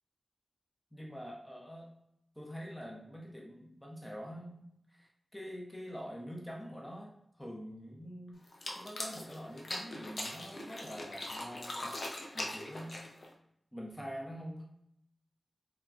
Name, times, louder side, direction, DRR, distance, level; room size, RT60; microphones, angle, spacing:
voice 1, 0.9-1.9 2.4-8.4 8.8-11.9 12.3-13.0 13.7-14.6, equal, 10° left, -2 dB, 0.5 m, -45 dB
sound 1, 8.5-13.3, left 1 dB, 65° left, 0.5 m, -41 dB
3.0 x 2.3 x 2.4 m, 0.78 s
wide cardioid pair, 75°, 0 cm